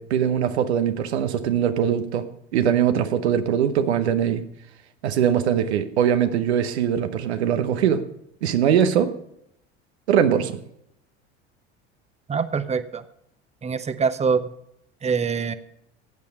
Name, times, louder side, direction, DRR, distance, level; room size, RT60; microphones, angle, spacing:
voice 1, 0.0-4.4 5.0-8.0 8.4-9.1 10.1-10.6, right 9 dB, 80° right, 9 dB, 1.1 m, -21 dB
voice 2, 12.3-13.0 13.6-14.4 15.0-15.5, right 5 dB, 20° right, 12 dB, 0.9 m, -24 dB
15.0 x 8.6 x 5.4 m, 0.77 s
hypercardioid pair, 70°, 32 cm